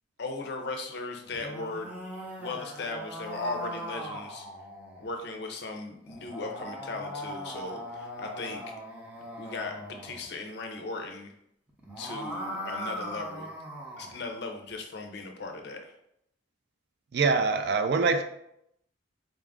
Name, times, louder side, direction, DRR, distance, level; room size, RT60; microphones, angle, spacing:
voice 1, 0.2-1.9 2.4-4.5 5.0-8.6 9.4-11.3 12.0-13.5 14.0-15.9, left 3 dB, 55° left, 3 dB, 0.5 m, -37 dB
sound 1, 1.2-5.1 6.1-10.3 11.7-14.2, equal, 5° right, 0.7 m, -40 dB
voice 2, 17.1-18.2, right 4 dB, 55° right, 9 dB, 0.3 m, -24 dB
4.0 x 2.4 x 3.5 m, 0.77 s
head